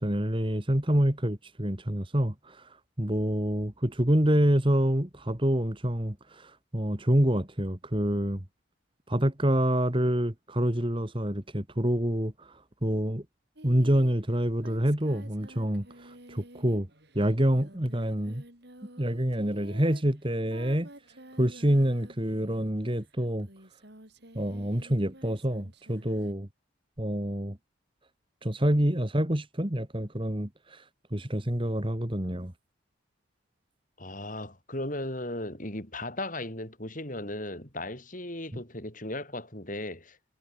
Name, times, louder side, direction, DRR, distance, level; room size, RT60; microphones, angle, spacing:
voice 1, 0.0-2.7 3.0-8.4 9.1-12.5 12.8-13.2 13.6-16.9 17.2-18.4 19.0-20.9 21.4-23.5 24.4-26.5 27.0-27.6 28.4-30.8 31.1-32.5, right 1 dB, 25° right, 2.0 m, -27 dB
Singing, 13.6-22.9 23.4-26.3, right 1 dB, 55° right, 5.6 m, -51 dB
voice 2, 34.0-40.2, left 1 dB, 40° left, 5.4 m, -36 dB
head